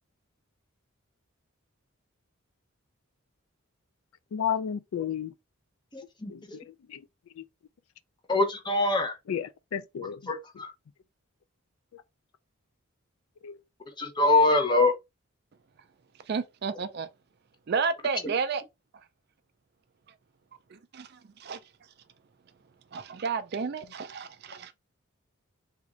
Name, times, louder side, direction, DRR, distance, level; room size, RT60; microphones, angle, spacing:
voice 1, 4.3-5.3 6.3-7.1 7.3-7.4 9.3-10.3 11.9-12.0 13.4-13.6, left 8 dB, 80° left, 0.4 m, -33 dB
voice 2, 5.9-6.6 8.3-9.1 10.3-10.7 14.0-14.9, left 2 dB, 20° left, 0.6 m, -24 dB
voice 3, 16.3-17.1 17.7-18.6 20.7-21.1 21.4-21.6 22.9-24.7, right 5 dB, 50° right, 0.4 m, -31 dB
3.5 x 2.5 x 3.0 m
head